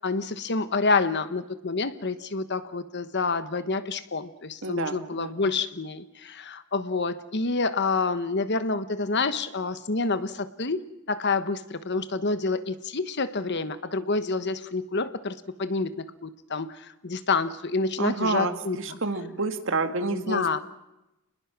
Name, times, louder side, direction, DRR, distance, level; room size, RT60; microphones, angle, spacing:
voice 1, 0.0-19.0 20.1-20.6, left 3 dB, 50° left, 12 dB, 1.2 m, -28 dB
voice 2, 4.6-5.3 18.0-20.6, right 3 dB, 60° right, 7 dB, 2.1 m, -29 dB
30.0 x 21.0 x 6.1 m, 0.94 s
head